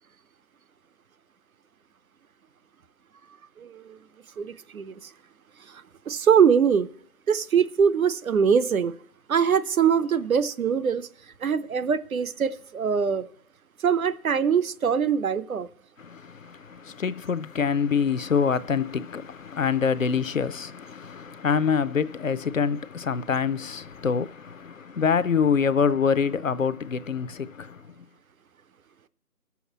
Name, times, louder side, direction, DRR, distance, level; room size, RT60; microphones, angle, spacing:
voice 1, 3.6-4.0 4.4-4.9 5.7-6.9 7.3-8.9 9.3-11.1 11.4-13.3 13.8-15.7, right 7 dB, 70° right, 0.7 m, -23 dB
voice 2, 16.0-27.8, left 6 dB, 65° left, 0.5 m, -25 dB
20.0 x 7.0 x 3.0 m
figure-of-eight pair, 165°, 44 cm